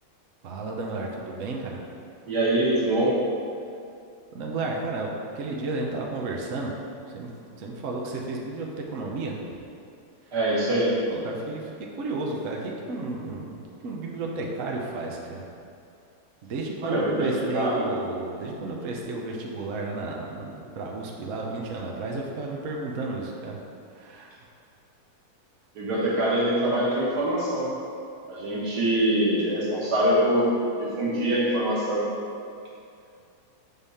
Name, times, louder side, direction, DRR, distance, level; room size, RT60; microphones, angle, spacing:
voice 1, 0.4-1.8 4.3-6.7 7.1-7.3 7.6-9.4 10.3-10.4 11.1-15.5 16.4-23.6 23.9-24.5, right 3 dB, 80° right, -1 dB, 0.7 m, -33 dB
voice 2, 2.3-3.3 10.3-11.0 16.8-17.9 25.8-27.7 28.3-32.1, right 1 dB, 50° right, -5 dB, 1.8 m, -24 dB
8.0 x 3.5 x 5.6 m, 2.5 s
omnidirectional pair, 2.4 m